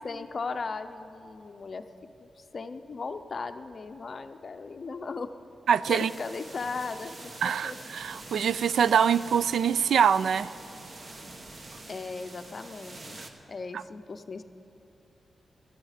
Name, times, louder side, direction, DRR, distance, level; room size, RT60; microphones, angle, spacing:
voice 1, 0.0-1.8 2.2-5.3 5.9-7.8 11.9-13.2 13.5-14.4, left 4 dB, 40° left, 9 dB, 0.6 m, -37 dB
voice 2, 5.7-6.1 7.4-10.5 13.7-13.8, right 7 dB, 80° right, 17 dB, 0.3 m, -24 dB
sound 1, 5.8-13.3, right 2 dB, 35° right, 1.0 m, -45 dB
17.0 x 12.5 x 5.0 m, 2.9 s
wide cardioid pair, 155°, 0 cm